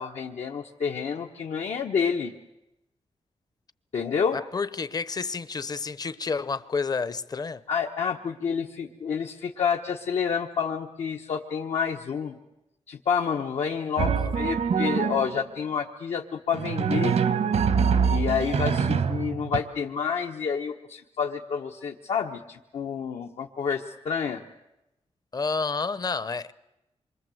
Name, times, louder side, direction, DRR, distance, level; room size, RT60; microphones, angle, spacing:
voice 1, 0.0-2.3 3.9-4.4 7.7-12.4 12.9-17.1 17.8-24.4, left 6 dB, 75° left, 1.3 m, -29 dB
voice 2, 4.0-7.6 14.2-14.3 25.3-26.5, left 4 dB, 35° left, 0.8 m, -30 dB
Drum, 14.0-15.4 16.5-19.6, right 6 dB, 75° right, 1.2 m, -24 dB
27.0 x 24.0 x 7.9 m
wide cardioid pair, 120°, 11 cm